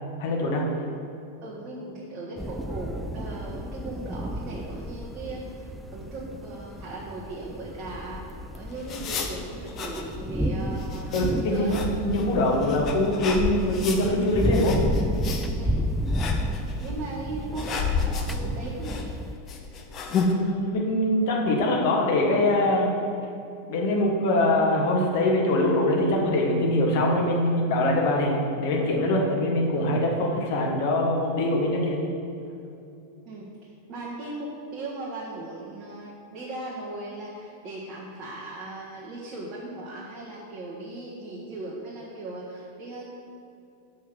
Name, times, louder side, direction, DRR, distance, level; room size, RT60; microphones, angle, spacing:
voice 1, 0.2-0.6 11.1-11.7 12.0-14.8 20.3-22.9 23.7-32.0, left 1 dB, 50° left, -1 dB, 1.5 m, -23 dB
voice 2, 1.4-5.7 5.9-11.8 15.6-15.9 16.8-19.1 29.3-29.4 33.2-43.2, right 2 dB, 35° right, -4 dB, 1.4 m, -38 dB
sound 1, 2.4-19.3, equal, 5° right, 0.4 m, -32 dB
sound 2, 8.2-20.3, left 5 dB, 30° left, 1.0 m, -32 dB
6.7 x 5.4 x 7.2 m, 2.7 s
figure-of-eight pair, 90°, 0 cm